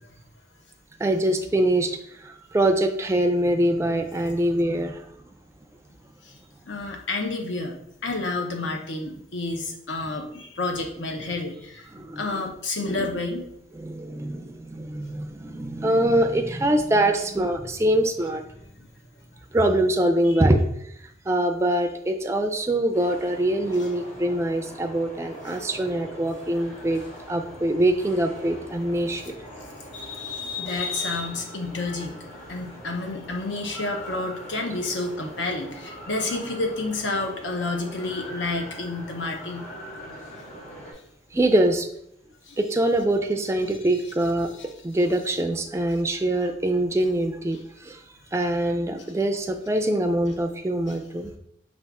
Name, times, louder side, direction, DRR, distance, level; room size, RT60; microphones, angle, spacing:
voice 1, 1.0-2.0 2.2-5.0 11.9-12.4 12.8-13.2 13.8-18.4 19.5-20.6 21.3-27.0 27.3-29.2 41.3-41.9 42.6-44.5 44.8-48.0 48.3-51.3, right 1 dB, 15° right, 5 dB, 0.3 m, -24 dB
voice 2, 6.6-11.9 12.2-13.5 20.2-20.4 25.5-25.6 29.9-32.2 32.5-39.7 42.4-42.6 50.9-51.0, left 3 dB, 85° left, 3 dB, 0.8 m, -30 dB
sound 1, 22.9-40.9, equal, 35° left, 1.5 m, -42 dB
5.3 x 2.4 x 3.5 m, 0.74 s
head